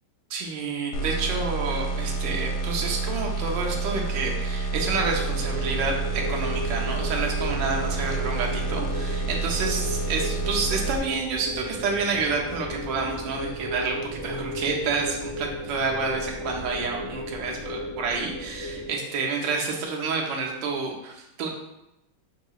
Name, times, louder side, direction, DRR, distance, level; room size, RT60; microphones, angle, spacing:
voice 1, 0.3-21.5, right 4 dB, 75° right, 0 dB, 1.3 m, -29 dB
sound 1, 0.9-11.0, right 3 dB, 90° left, 1.4 m, -29 dB
sound 2, 4.7-18.9, equal, 20° right, 1.2 m, -34 dB
5.5 x 2.8 x 2.4 m, 0.89 s
omnidirectional pair, 2.2 m